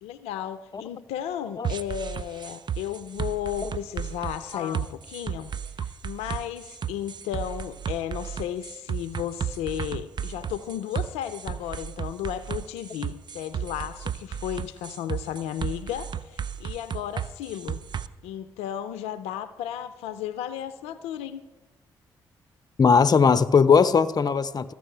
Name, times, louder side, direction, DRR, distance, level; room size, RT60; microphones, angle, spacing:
voice 1, 0.0-5.5 5.8-17.8 18.2-21.4, left 10 dB, 80° left, 12 dB, 0.5 m, -34 dB
sound 1, 1.6-18.1, right 8 dB, 45° right, 0.6 m, -33 dB
voice 2, 22.8-24.7, left 5 dB, 40° left, 14 dB, 0.6 m, -19 dB
14.0 x 6.1 x 8.3 m, 1.2 s
hypercardioid pair, 45°, 10 cm